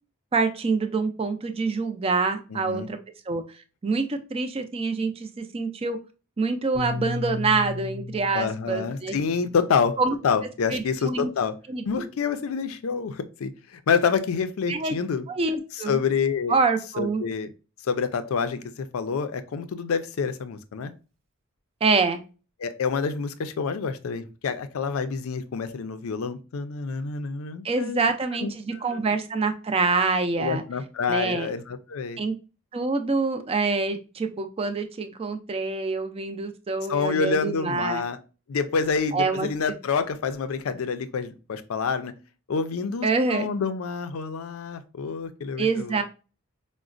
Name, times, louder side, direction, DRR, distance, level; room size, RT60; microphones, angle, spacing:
voice 1, 0.3-3.0 3.3-3.4 3.8-6.0 6.4-9.2 10.0-10.2 10.7-11.3 11.7-12.1 14.7-14.9 15.3-16.0 16.5-17.2 21.8-22.2 27.6-30.6 31.1-31.5 32.2-32.3 32.7-38.0 39.1-39.5 43.0-43.5 45.6-46.0, right 4 dB, 25° right, 7 dB, 0.4 m, -26 dB
voice 2, 2.5-2.9 8.3-10.0 10.2-11.5 11.9-15.3 15.7-16.6 17.0-17.5 17.8-20.9 22.6-28.1 28.4-28.5 28.9-29.0 30.4-32.2 36.9-38.2 38.5-42.1 42.5-46.0, left 5 dB, 70° left, 11 dB, 0.4 m, -27 dB
Piano, 6.7-11.2, left 4 dB, 60° right, 0.9 m, -36 dB
4.8 x 2.1 x 2.5 m, 0.33 s
head